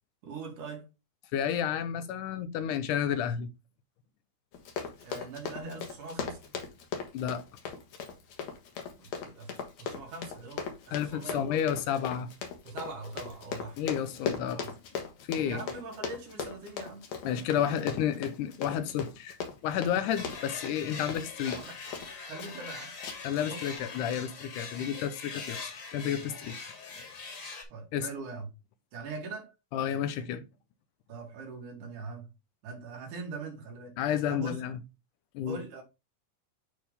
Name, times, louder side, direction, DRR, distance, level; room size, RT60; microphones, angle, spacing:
voice 1, 0.2-0.9 5.0-6.4 9.0-9.5 9.8-11.6 12.7-14.1 14.4-14.7 15.4-17.1 17.6-17.8 21.4-21.7 22.3-22.9 23.4-23.7 27.7-28.5 28.9-29.5 31.1-32.3 32.6-34.0 34.3-34.7 35.5-35.8, right 3 dB, 80° right, 3.6 m, -42 dB
voice 2, 1.3-3.5 7.1-7.4 10.9-12.3 13.8-14.8 15.3-15.6 17.2-21.6 23.2-26.6 27.9-28.1 29.7-30.4 34.0-34.8 35.3-35.6, left 9 dB, 85° left, 2.4 m, -31 dB
Run, 4.5-22.1 22.4-22.7 23.0-23.4 23.7-23.8, left 6 dB, 65° left, 2.5 m, -39 dB
sound 1, 20.2-27.6, left 4 dB, 50° left, 2.5 m, -42 dB
9.0 x 3.8 x 3.4 m
omnidirectional pair, 3.5 m